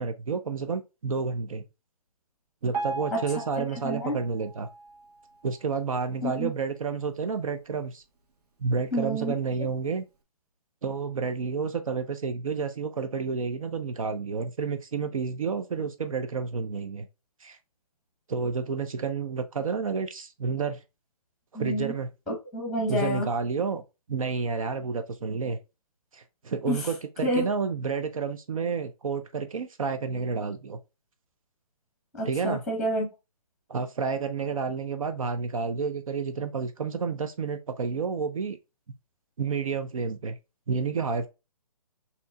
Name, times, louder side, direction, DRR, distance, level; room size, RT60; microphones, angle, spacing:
voice 1, 0.0-1.7 2.6-4.7 5.4-8.0 8.6-10.0 10.8-17.1 17.4-17.6 18.3-20.8 21.5-22.1 22.9-23.8 24.1-25.6 26.1-30.8 32.2-32.6 33.7-38.6 39.4-40.4 40.7-41.3, right 5 dB, 60° right, 0.6 m, -30 dB
Piano, 2.7-5.8 6.4-6.5 6.8-6.9 7.6-7.7 8.3-8.4, right 3 dB, 80° right, 1.5 m, -38 dB
voice 2, 3.6-4.1 6.2-6.5 8.9-9.3 21.5-21.9 22.3-23.3 26.7-26.8 27.2-27.5 32.2-33.1, equal, ahead, 0.9 m, -29 dB
6.7 x 2.9 x 2.3 m
hypercardioid pair, 165°, 20 cm